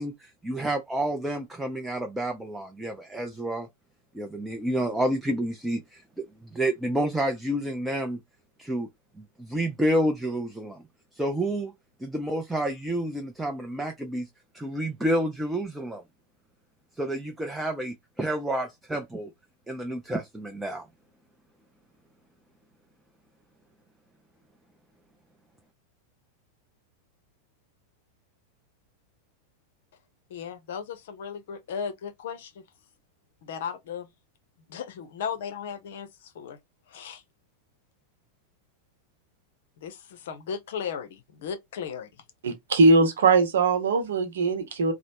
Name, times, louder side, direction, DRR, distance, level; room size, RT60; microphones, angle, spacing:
voice 1, 0.0-3.7 4.1-8.2 8.6-8.9 9.2-10.8 11.1-11.7 12.0-14.3 14.5-16.0 17.0-19.3 19.7-20.9, right 1 dB, 5° right, 0.5 m, -29 dB
voice 2, 30.3-32.6 33.4-34.1 34.7-36.6 36.9-37.2 39.8-42.2, left 7 dB, 55° left, 0.6 m, -36 dB
voice 3, 42.4-44.9, right 3 dB, 65° right, 0.8 m, -21 dB
3.0 x 2.0 x 2.7 m
figure-of-eight pair, 90°, 0 cm